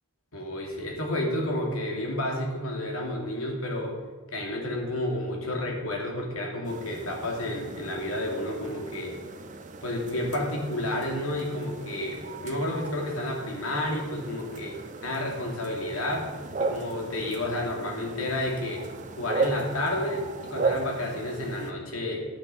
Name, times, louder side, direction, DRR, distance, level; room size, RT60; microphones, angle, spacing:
voice 1, 0.3-3.9 4.3-9.2 9.8-14.8 15.0-16.3 16.6-18.9 19.2-22.3, left 1 dB, 85° left, 0 dB, 2.8 m, -31 dB
sound 1, 6.6-21.7, right 3 dB, 35° right, 0.7 m, -36 dB
10.0 x 7.3 x 6.8 m, 1.4 s
head